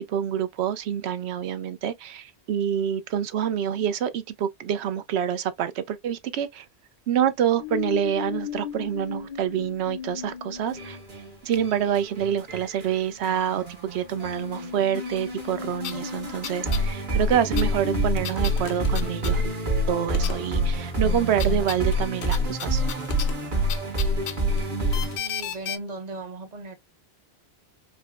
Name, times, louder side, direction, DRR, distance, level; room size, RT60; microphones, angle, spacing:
voice 1, 0.0-6.7 7.1-11.0 11.4-19.5 19.9-22.8, right 9 dB, 80° right, 0.8 m, -27 dB
sound 1, 7.6-11.3 12.4-12.5 13.2-17.7 19.4-19.5, left 9 dB, 50° left, 0.5 m, -37 dB
sound 2, 10.7-25.2, right 1 dB, 65° right, 1.7 m, -27 dB
sound 3, 15.4-15.5 15.8-16.9 17.1-19.8 20.1-20.7 21.0-25.8, left 9 dB, 80° left, 0.8 m, -36 dB
voice 2, 23.9-24.3 25.1-26.7, right 3 dB, 45° right, 0.7 m, -38 dB
5.0 x 2.1 x 2.2 m
omnidirectional pair, 1.1 m